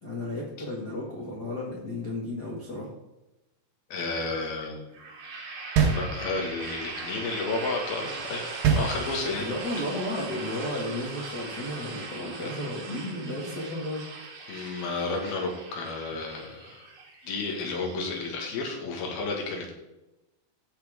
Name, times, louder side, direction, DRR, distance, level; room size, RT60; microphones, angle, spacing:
voice 1, 0.0-2.9 9.4-14.0, left 1 dB, 85° left, -4 dB, 0.9 m, -33 dB
voice 2, 3.9-4.8 6.0-9.4 14.5-16.8 17.2-19.7, left 3 dB, 60° left, 1 dB, 3.4 m, -32 dB
sound 1, 4.9-18.7, right 3 dB, 50° right, 2.6 m, -40 dB
sound 2, 5.8-6.7 8.6-9.6, right 6 dB, 75° right, 3.4 m, -25 dB
16.0 x 6.0 x 3.6 m, 0.97 s
omnidirectional pair, 5.3 m